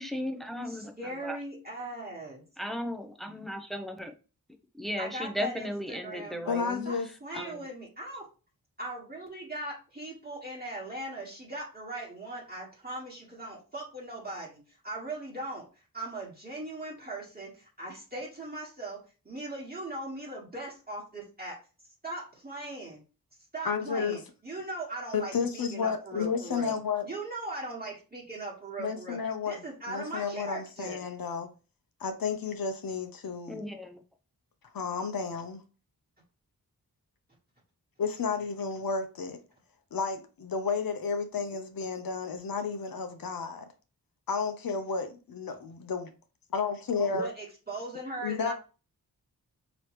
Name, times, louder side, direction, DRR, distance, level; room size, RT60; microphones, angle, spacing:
voice 1, 0.0-1.4 2.6-4.1 4.8-6.9 7.4-7.7 33.5-34.0, left 1 dB, ahead, 0.6 m, -36 dB
voice 2, 0.7-2.4 5.0-8.2 8.8-15.6 15.9-19.0 19.2-21.6 22.0-23.0 23.5-26.8 27.0-29.2 29.4-31.0 47.1-48.5, right 2 dB, 25° right, 1.5 m, -39 dB
voice 3, 6.5-7.1 23.6-24.2 25.1-27.1 28.8-29.6 29.9-31.5 32.0-33.6 34.7-35.6 38.0-39.4 39.9-43.7 44.3-46.1 46.5-47.3 48.2-48.5, left 5 dB, 65° left, 0.8 m, -32 dB
4.9 x 3.0 x 3.0 m
wide cardioid pair, 95°, 37 cm